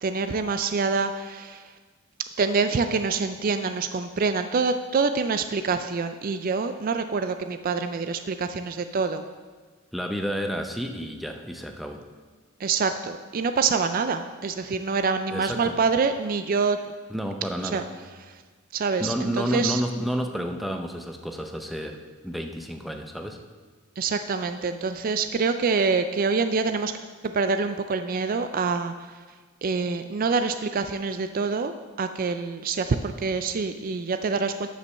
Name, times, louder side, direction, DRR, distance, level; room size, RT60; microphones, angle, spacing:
voice 1, 0.0-1.7 2.4-9.2 12.6-16.8 17.6-17.8 18.3-18.4 18.7-19.8 24.0-26.9 27.2-29.1 29.6-34.7, right 4 dB, 40° right, 8 dB, 0.4 m, -26 dB
voice 2, 9.9-12.0 15.3-15.8 17.1-17.9 19.0-23.4, equal, ahead, 3 dB, 0.6 m, -30 dB
9.8 x 5.3 x 6.4 m, 1.4 s
head